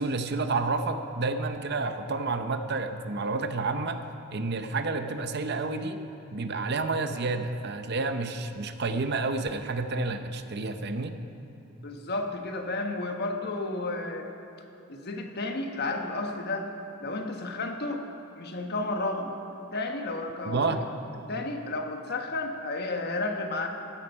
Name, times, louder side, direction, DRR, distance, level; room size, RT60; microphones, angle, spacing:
voice 1, 0.0-4.0 4.3-6.0 6.3-11.1 20.5-20.8, right 3 dB, 50° right, 8 dB, 0.7 m, -30 dB
voice 2, 11.8-14.3 14.9-16.7 17.0-18.0 18.3-19.4 19.7-20.7 21.3-23.7, left 2 dB, 50° left, 4 dB, 1.2 m, -32 dB
15.0 x 11.5 x 5.5 m, 3.0 s
head